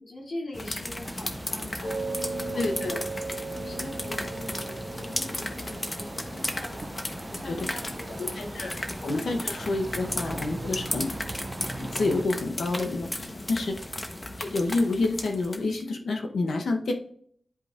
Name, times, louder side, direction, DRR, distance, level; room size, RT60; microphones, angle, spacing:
voice 1, 0.0-3.1 3.6-6.9 7.3-8.5 8.8-9.0 13.2-13.6, left 1 dB, 65° left, -2 dB, 2.5 m, -42 dB
sound 1, 0.5-15.8, left 1 dB, 30° left, 1.0 m, -35 dB
sound 2, 1.0-12.2, right 3 dB, 40° right, 0.3 m, -41 dB
sound 3, 1.8-10.2, right 2 dB, 45° left, 2.0 m, -39 dB
voice 2, 2.6-3.0 7.5-7.7 8.2-8.8 9.0-11.1 11.8-13.1 13.5-13.8 14.4-16.9, left 2 dB, 85° left, 3 dB, 0.8 m, -28 dB
11.0 x 4.9 x 2.4 m, 0.63 s
cardioid pair, 55°, 0 cm